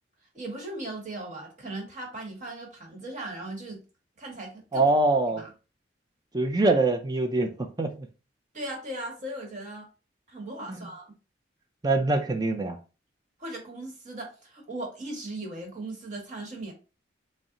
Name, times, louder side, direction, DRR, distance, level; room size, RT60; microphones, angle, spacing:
voice 1, 0.3-3.8 4.2-4.9 5.3-5.5 8.5-9.9 10.3-11.1 13.4-16.7, right 1 dB, 40° right, 1.2 m, -38 dB
voice 2, 4.7-5.4 6.3-7.5 7.8-8.1 10.7-10.9 11.8-12.8, right 2 dB, 20° right, 0.5 m, -24 dB
4.0 x 2.1 x 3.7 m
head